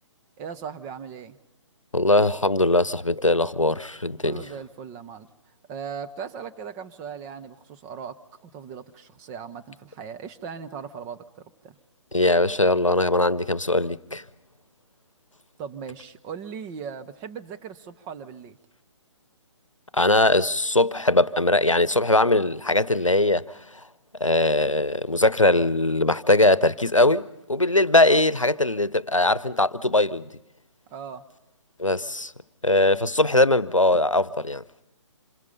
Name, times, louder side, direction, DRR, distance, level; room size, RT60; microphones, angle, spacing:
voice 1, 0.4-1.4 4.2-5.3 5.7-11.7 15.6-18.6 30.9-31.3, right 7 dB, 15° right, 0.9 m, -38 dB
voice 2, 1.9-4.4 12.1-14.2 19.9-23.4 24.2-30.3 31.8-32.3 32.6-34.6, left 2 dB, 90° left, 0.9 m, -21 dB
27.0 x 27.0 x 5.5 m
figure-of-eight pair, 135°, 16 cm